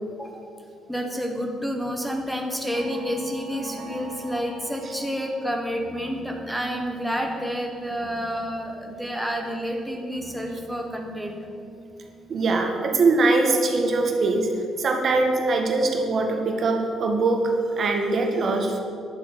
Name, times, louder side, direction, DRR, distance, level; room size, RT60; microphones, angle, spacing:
voice 1, 0.1-0.5 0.9-11.5, equal, ahead, 2 dB, 1.5 m, -29 dB
sound 1, 2.2-14.4 14.7-16.3 16.7-17.0 17.3-17.4, right 4 dB, 90° right, 2.5 m, -43 dB
voice 2, 12.3-14.5 14.8-18.8, right 3 dB, 50° right, 2 dB, 1.8 m, -22 dB
11.0 x 8.5 x 8.2 m, 2.4 s
cardioid pair, 110°, 0 cm